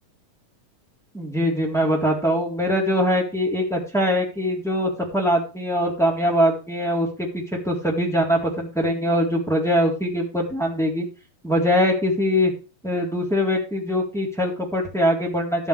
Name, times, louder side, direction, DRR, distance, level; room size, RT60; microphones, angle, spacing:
voice 1, 1.1-11.0 11.4-12.5 12.8-15.7, equal, ahead, -4 dB, 3.3 m, -22 dB
12.5 x 9.9 x 3.4 m, 0.32 s
omnidirectional pair, 4.0 m